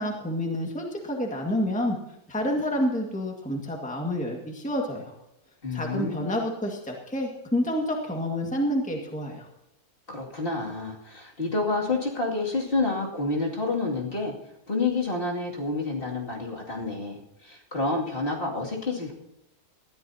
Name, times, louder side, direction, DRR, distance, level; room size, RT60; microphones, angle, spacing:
voice 1, 0.0-2.0 2.3-5.1 5.7-9.5, left 1 dB, 5° left, 1 dB, 1.8 m, -28 dB
voice 2, 5.6-6.3 10.1-14.3 14.7-19.1, left 3 dB, 40° left, -2 dB, 2.7 m, -29 dB
20.0 x 13.5 x 2.8 m, 0.86 s
omnidirectional pair, 1.5 m